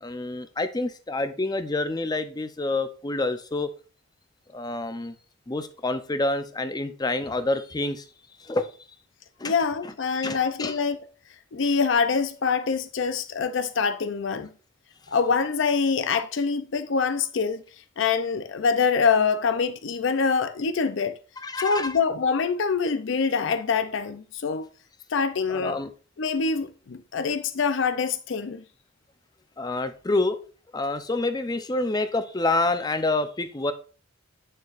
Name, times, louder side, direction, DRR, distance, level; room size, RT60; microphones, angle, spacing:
voice 1, 0.0-3.7 4.5-5.1 5.5-8.0 8.4-8.7 9.4-9.5 10.2-10.8 21.4-22.0 25.5-25.9 29.6-30.4 30.7-33.7, left 2 dB, 20° left, 0.6 m, -27 dB
voice 2, 9.4-11.0 11.5-14.5 15.1-17.6 18.0-21.2 21.6-24.7 25.1-25.8 26.2-28.6, left 5 dB, 65° left, 0.5 m, -25 dB
8.9 x 6.6 x 2.5 m
head